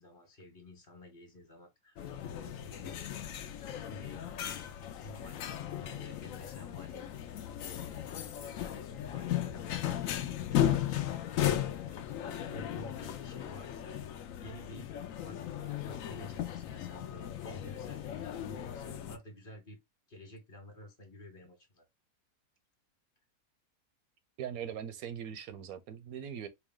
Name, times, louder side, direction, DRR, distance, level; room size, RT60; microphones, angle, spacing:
voice 1, 0.0-3.0 3.4-4.3 4.9-11.2 12.2-14.0 14.4-14.9 15.2-19.8 20.1-21.8, left 1 dB, 40° left, 1.3 m, -52 dB
sound 1, 2.0-19.2, left 11 dB, 70° left, 0.9 m, -36 dB
voice 2, 24.4-26.5, right 8 dB, 80° right, 1.1 m, -40 dB
4.6 x 2.3 x 3.6 m
omnidirectional pair, 1.5 m